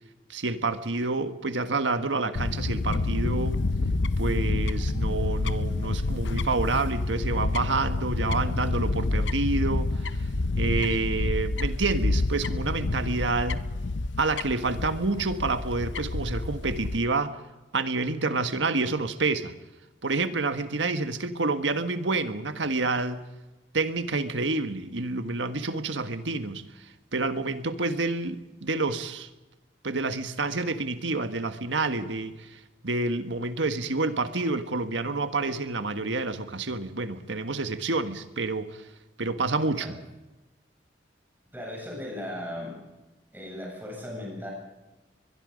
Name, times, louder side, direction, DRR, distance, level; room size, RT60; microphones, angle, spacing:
voice 1, 0.3-3.6 4.2-10.2 10.6-13.6 14.2-17.4 17.7-19.5 20.0-23.2 23.7-29.3 29.8-38.8 39.2-40.0, right 3 dB, 85° right, 9 dB, 1.5 m, -28 dB
Fowl / Bird, 2.4-17.0, left 2 dB, 80° left, 0.7 m, -28 dB
voice 2, 41.5-42.8 43.3-44.5, left 1 dB, 10° right, 0 dB, 7.9 m, -37 dB
22.5 x 22.5 x 5.3 m, 1.1 s
head